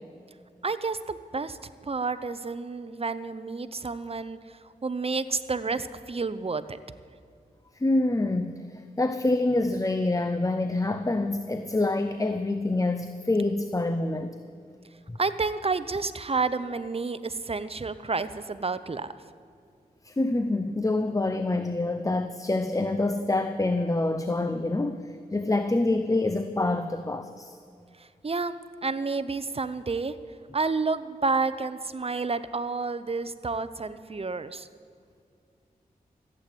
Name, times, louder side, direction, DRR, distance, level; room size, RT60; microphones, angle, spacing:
voice 1, 0.6-1.6 1.8-6.8 15.2-19.1 28.0-30.1 30.5-34.7, right 4 dB, 35° right, 13 dB, 0.8 m, -30 dB
voice 2, 7.8-14.3 15.1-15.2 20.0-27.6, left 2 dB, 20° left, 9 dB, 0.7 m, -26 dB
14.5 x 8.4 x 9.1 m, 2.3 s
cardioid pair, 45°, 16 cm